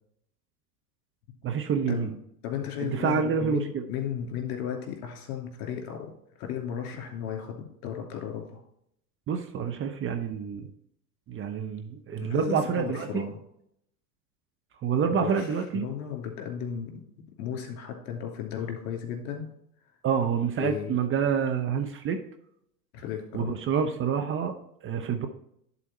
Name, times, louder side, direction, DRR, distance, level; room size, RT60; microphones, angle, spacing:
voice 1, 1.4-2.1 2.8-3.9 9.3-10.7 11.3-13.3 14.8-15.9 20.0-22.2 23.3-24.5 24.8-25.3, right 7 dB, 25° right, 6 dB, 0.8 m, -27 dB
voice 2, 2.4-6.1 6.4-8.6 12.2-13.4 15.1-17.0 17.4-19.5 20.6-21.0 22.9-23.5, left 8 dB, 55° left, 2 dB, 2.7 m, -35 dB
11.0 x 4.3 x 4.3 m, 0.72 s
hypercardioid pair, 90°, 47 cm